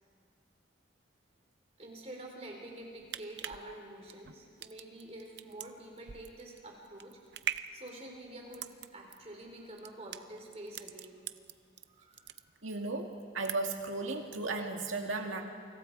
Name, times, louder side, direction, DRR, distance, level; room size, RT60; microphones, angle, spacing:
voice 1, 1.8-7.2 7.7-11.3 12.0-12.4, right 1 dB, 30° right, 1 dB, 4.0 m, -47 dB
sound 1, 2.8-11.9 12.1-12.9 13.2-13.9 14.2-14.4, right 10 dB, 60° right, 0.6 m, -42 dB
voice 2, 12.6-15.4, right 3 dB, 85° right, 3 dB, 2.3 m, -35 dB
28.0 x 25.5 x 4.8 m, 2.2 s
head